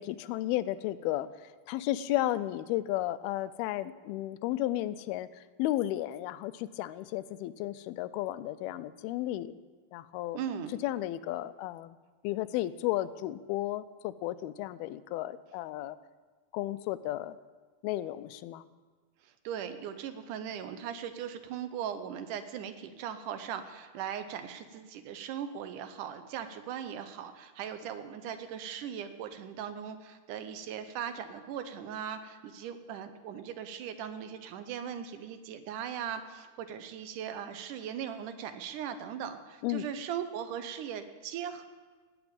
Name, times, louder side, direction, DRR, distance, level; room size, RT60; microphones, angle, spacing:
voice 1, 0.0-5.3 5.6-9.6 9.9-10.4 10.8-12.0 12.2-16.0 16.5-17.4 17.8-18.7 39.6-39.9, left 15 dB, 90° left, 15 dB, 2.5 m, -33 dB
voice 2, 10.3-10.7 19.2-41.6, right 8 dB, 75° right, 9 dB, 2.0 m, -39 dB
18.0 x 7.0 x 8.8 m, 1.4 s
omnidirectional pair, 4.3 m